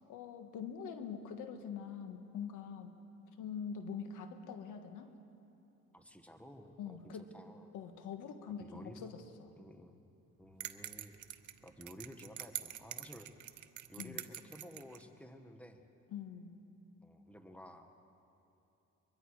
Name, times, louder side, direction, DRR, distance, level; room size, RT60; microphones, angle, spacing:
voice 1, 0.1-2.9 3.4-5.1 6.8-7.3 7.7-9.5 14.0-14.2 16.1-16.6, left 7 dB, 85° left, 7 dB, 1.6 m, -44 dB
voice 2, 5.9-7.7 8.6-9.1 9.6-10.0 10.4-11.1 11.6-13.3 13.9-15.8 17.0-17.9, equal, 5° left, 6 dB, 1.6 m, -53 dB
sound 1, 10.6-15.0, right 12 dB, 70° right, 0.9 m, -45 dB
23.5 x 22.5 x 4.9 m, 2.9 s
cardioid pair, 90°, 30 cm